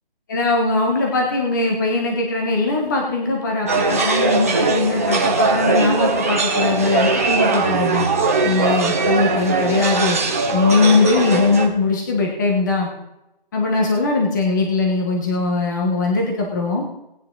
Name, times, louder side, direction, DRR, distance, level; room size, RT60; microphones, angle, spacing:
voice 1, 0.3-8.1 8.4-10.2 10.5-12.9 13.5-16.9, left 3 dB, 20° left, 0 dB, 1.3 m, -20 dB
sound 1, 3.7-11.7, right 3 dB, 15° right, 0.8 m, -20 dB
19.0 x 9.7 x 3.9 m, 0.89 s
hypercardioid pair, 170°, 29 cm